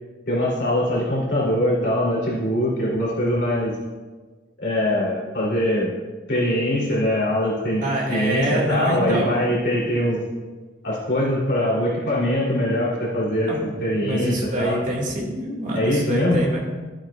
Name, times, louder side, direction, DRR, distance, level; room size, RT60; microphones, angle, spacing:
voice 1, 0.3-3.7 4.6-5.9 6.3-7.8 8.1-10.2 10.8-13.5 13.8-14.8 15.7-16.4, left 1 dB, 65° left, -6 dB, 3.1 m, -22 dB
voice 2, 7.8-9.4 13.5-13.6 14.0-16.6, right 1 dB, 45° right, -2 dB, 2.1 m, -25 dB
12.5 x 8.7 x 2.4 m, 1.3 s
head